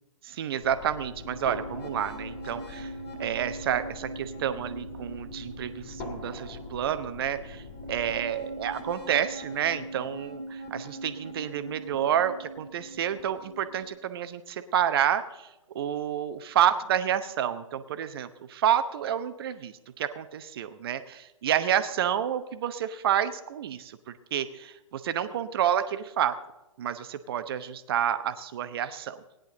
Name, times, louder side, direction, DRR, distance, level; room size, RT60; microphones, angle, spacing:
voice 1, 0.2-2.9 3.2-15.5 15.7-26.3 26.8-29.2, right 10 dB, 45° right, 11 dB, 0.9 m, -29 dB
sound 1, 0.6-13.9, equal, 35° left, 2.5 m, -40 dB
17.0 x 10.5 x 3.8 m, 1.0 s
figure-of-eight pair, 125°, 18 cm